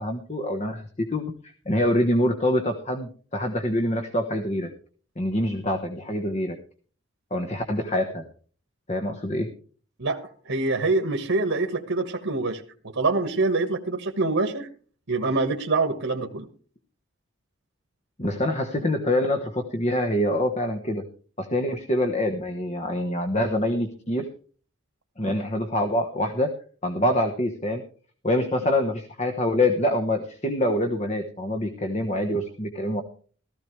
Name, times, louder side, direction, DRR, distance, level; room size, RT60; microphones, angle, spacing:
voice 1, 0.0-4.7 5.2-6.6 7.3-8.2 8.9-9.5 18.2-21.0 21.4-24.2 25.2-26.5 26.8-27.8 28.2-33.0, left 1 dB, 35° left, 6 dB, 1.1 m, -25 dB
voice 2, 10.0-12.6 12.9-14.7 15.1-16.5, right 3 dB, 90° right, 5 dB, 1.4 m, -25 dB
15.5 x 14.5 x 3.2 m, 0.42 s
head